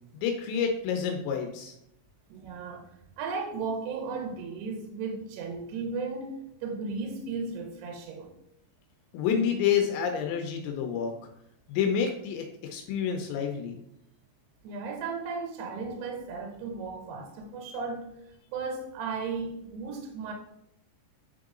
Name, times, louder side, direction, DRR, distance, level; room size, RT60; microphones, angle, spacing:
voice 1, 0.1-1.7 9.1-11.1 11.7-13.8, left 7 dB, 85° left, 2.9 m, -28 dB
voice 2, 2.3-8.3 14.6-18.2 18.5-20.3, right 4 dB, 75° right, 2.6 m, -35 dB
8.6 x 3.8 x 3.7 m
omnidirectional pair, 5.1 m